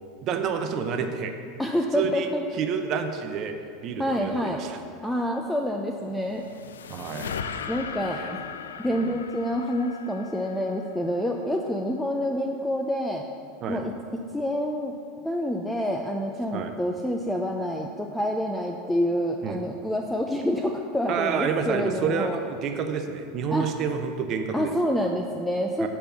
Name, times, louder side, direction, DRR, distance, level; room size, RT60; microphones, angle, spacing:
voice 1, 0.2-1.3 1.9-3.6 3.8-4.8 6.9-7.4 8.2-8.3 8.9-9.2 13.6-13.8 16.5-16.7 19.4-19.6 21.1-24.7 25.8-25.9, right 6 dB, 45° right, 6 dB, 0.8 m, -29 dB
voice 2, 1.6-2.5 4.0-4.6 5.0-6.4 7.7-8.4 8.8-13.3 13.7-13.9 14.3-14.9 15.2-22.4 23.5-23.7 24.5-25.9, equal, 5° left, 2 dB, 0.5 m, -27 dB
sound 1, 6.0-11.4, left 7 dB, 85° left, 0.3 m, -38 dB
7.2 x 4.4 x 6.9 m, 2.4 s
hypercardioid pair, 95°, 0 cm